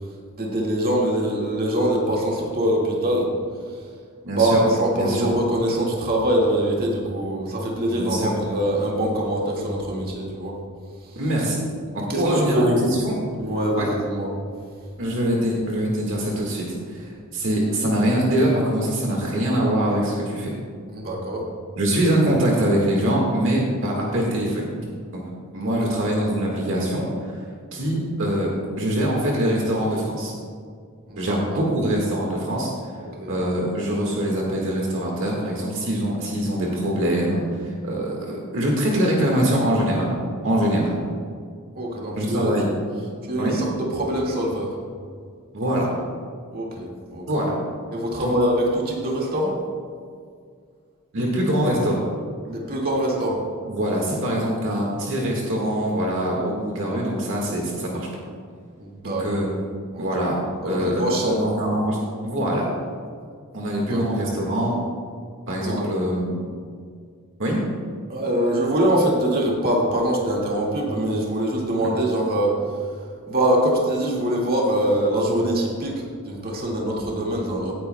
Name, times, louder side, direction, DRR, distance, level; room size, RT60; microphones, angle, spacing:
voice 1, 0.3-3.3 4.3-10.6 11.0-11.2 12.1-12.9 13.4-14.3 20.9-21.5 25.6-26.0 31.1-31.6 33.2-33.4 41.8-42.5 43.2-44.8 46.5-47.3 47.9-49.6 52.5-53.4 58.8-59.4 59.9-60.1 60.6-61.4 63.7-64.0 65.6-65.9 68.1-73.0 73.3-77.7, right 1 dB, 45° right, -3 dB, 1.9 m, -23 dB
voice 2, 4.2-4.6 4.9-5.3 7.9-8.3 11.1-11.6 11.9-13.1 13.8-13.9 15.0-20.5 21.8-24.7 25.1-25.2 25.5-27.4 27.7-28.5 28.8-30.3 31.2-32.7 33.3-40.1 40.4-40.9 42.2-42.7 43.4-43.6 45.5-45.9 47.3-47.5 48.2-48.3 51.1-52.0 53.6-58.1 59.0-59.5 60.0-60.4 60.6-62.0 62.2-62.6 63.5-64.7 65.5-66.4 67.4-67.6 71.8-72.0, right 1 dB, 60° right, -2 dB, 1.7 m, -23 dB
17.0 x 9.6 x 2.2 m, 2.1 s
head